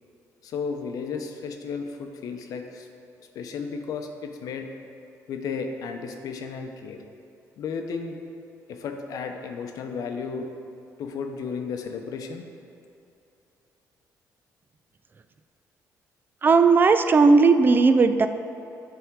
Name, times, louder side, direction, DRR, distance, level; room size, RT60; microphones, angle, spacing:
voice 1, 0.4-2.9 3.3-4.7 5.3-7.0 7.6-8.2 8.7-10.5 11.0-12.5, left 5 dB, 70° left, 5 dB, 0.7 m, -33 dB
voice 2, 16.4-18.3, right 4 dB, 30° right, 9 dB, 0.3 m, -17 dB
9.3 x 3.5 x 4.6 m, 2.7 s
cardioid pair, 100°, 6 cm